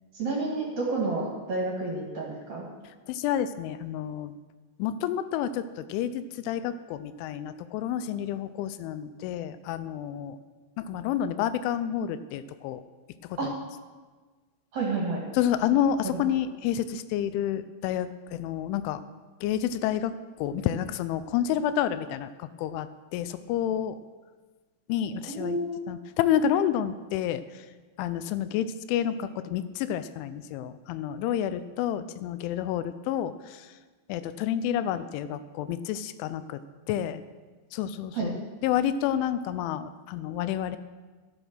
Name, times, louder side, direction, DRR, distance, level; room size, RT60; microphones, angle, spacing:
voice 1, 0.1-2.6 13.4-13.5 14.7-15.2 16.0-16.2 25.3-25.8 38.1-38.3, right 3 dB, 50° right, -3 dB, 2.6 m, -30 dB
voice 2, 3.1-4.3 4.8-10.4 10.8-12.8 15.4-19.0 19.4-20.1 20.4-22.9 23.1-24.0 24.9-25.6 25.9-27.4 28.0-33.3 34.1-36.6 36.9-37.2 37.7-38.4 38.6-40.8, left 10 dB, 85° left, 13 dB, 3.0 m, -29 dB
13.0 x 9.0 x 6.2 m, 1.3 s
omnidirectional pair, 5.6 m